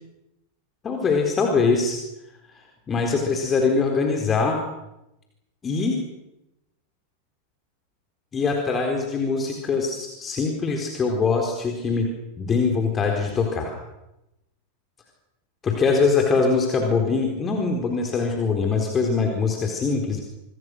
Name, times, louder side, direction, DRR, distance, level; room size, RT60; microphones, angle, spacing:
voice 1, 0.8-2.0 2.5-4.6 5.6-6.0 8.3-12.1 12.4-13.8 15.6-20.2, left 4 dB, 20° left, 2 dB, 4.2 m, -23 dB
28.5 x 23.5 x 6.5 m, 0.92 s
figure-of-eight pair, 90°, 0 cm